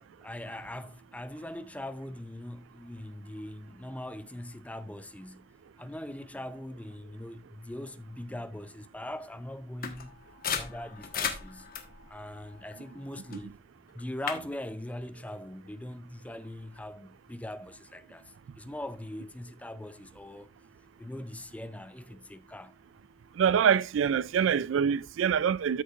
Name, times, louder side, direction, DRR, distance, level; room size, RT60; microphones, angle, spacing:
voice 1, 0.0-5.5 5.8-10.2 10.5-11.7 12.1-13.5 13.9-20.5 21.0-22.7, left 1 dB, 5° left, 0.4 m, -41 dB
sound 1, 9.8-13.5 13.9-14.4, left 7 dB, 50° left, 1.2 m, -37 dB
voice 2, 23.4-25.8, right 7 dB, 75° right, 0.3 m, -25 dB
13.0 x 6.5 x 2.4 m
head